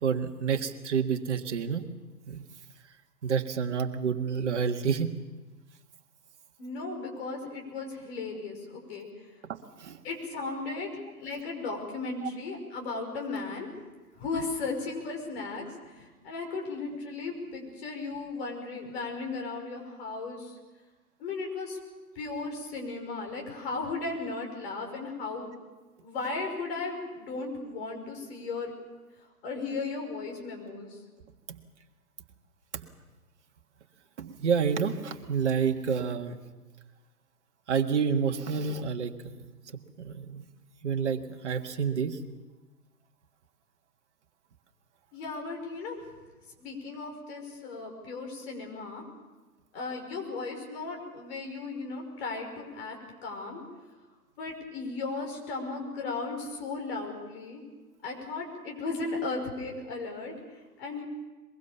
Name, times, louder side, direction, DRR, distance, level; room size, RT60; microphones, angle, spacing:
voice 1, 0.0-1.8 2.3-2.4 3.2-5.1 9.5-10.0 12.2-12.3 34.2-36.4 37.7-39.1 39.7-40.4 40.8-42.2, right 6 dB, 45° right, 5 dB, 1.8 m, -29 dB
voice 2, 6.6-9.3 10.0-10.9 11.2-13.7 14.2-20.6 21.2-21.8 22.2-25.5 26.0-28.7 29.2-31.0 45.1-46.0 46.6-49.0 49.7-53.0 53.2-53.6 54.4-57.6 58.0-61.0, left 3 dB, 40° left, 2 dB, 5.6 m, -36 dB
22.5 x 22.5 x 7.0 m, 1.2 s
figure-of-eight pair, 125°, 47 cm